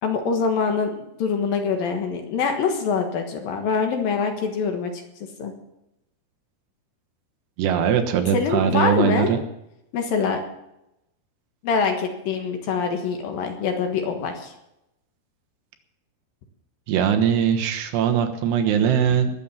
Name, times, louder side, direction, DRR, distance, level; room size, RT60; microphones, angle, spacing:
voice 1, 0.0-5.0 5.4-5.5 8.3-9.3 9.9-10.4 11.6-14.5, left 5 dB, 65° left, 4 dB, 2.9 m, -24 dB
voice 2, 7.6-9.4 16.9-19.3, right 8 dB, 80° right, 5 dB, 3.4 m, -21 dB
20.0 x 7.5 x 7.2 m, 0.86 s
omnidirectional pair, 4.9 m